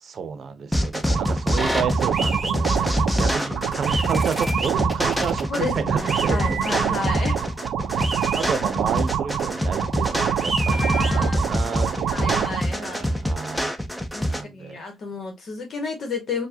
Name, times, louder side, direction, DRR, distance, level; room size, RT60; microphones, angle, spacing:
voice 1, 0.0-7.1 7.8-13.7 14.3-14.8, right 6 dB, 55° right, 0.7 m, -31 dB
sound 1, 0.7-14.4, equal, 5° left, 0.6 m, -25 dB
sound 2, 1.1-12.6, right 9 dB, 90° right, 0.3 m, -26 dB
sound 3, 2.1-2.5 3.8-4.7 6.1-6.7 8.0-8.5 10.4-11.1, right 3 dB, 25° right, 1.0 m, -30 dB
voice 2, 5.5-7.4 10.7-11.6 12.1-13.2 14.1-16.5, left 3 dB, 55° left, 1.1 m, -32 dB
4.6 x 2.2 x 2.7 m
cardioid pair, 100°, 0 cm